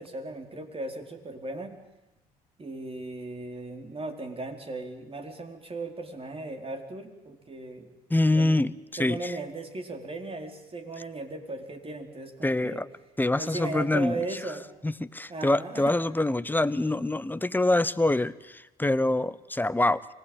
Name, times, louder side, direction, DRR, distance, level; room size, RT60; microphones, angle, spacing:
voice 1, 0.0-1.7 2.6-7.9 8.3-8.5 9.0-12.8 13.4-14.6 15.3-15.9, right 2 dB, 30° right, 4 dB, 4.6 m, -37 dB
voice 2, 8.1-9.3 12.4-12.9 13.2-14.2 14.8-20.1, left 2 dB, 10° left, 16 dB, 1.1 m, -25 dB
25.0 x 19.0 x 9.1 m, 1.0 s
hypercardioid pair, 60°, 18 cm